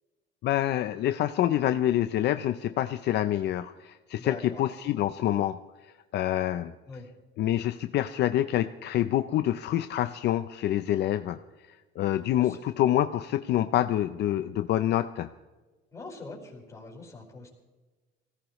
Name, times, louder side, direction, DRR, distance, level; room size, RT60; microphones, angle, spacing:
voice 1, 0.4-5.6 6.1-6.7 7.4-11.4 12.0-15.3, left 12 dB, 60° left, 10 dB, 0.6 m, -26 dB
voice 2, 4.2-4.6 6.9-7.1 12.4-12.7 15.9-17.5, left 3 dB, 15° left, -2 dB, 4.8 m, -43 dB
25.0 x 16.5 x 3.1 m, 1.2 s
cardioid pair, 170°, 20 cm